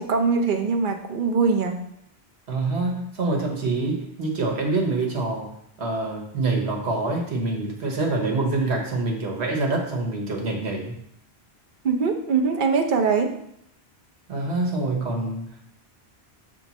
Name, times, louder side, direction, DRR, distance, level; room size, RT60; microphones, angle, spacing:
voice 1, 0.0-1.8 11.8-13.3, right 5 dB, 55° right, 4 dB, 0.8 m, -22 dB
voice 2, 2.5-5.5 5.8-10.9 14.3-15.7, right 3 dB, 80° right, 1 dB, 1.4 m, -26 dB
7.0 x 3.5 x 4.1 m, 0.72 s
omnidirectional pair, 1.1 m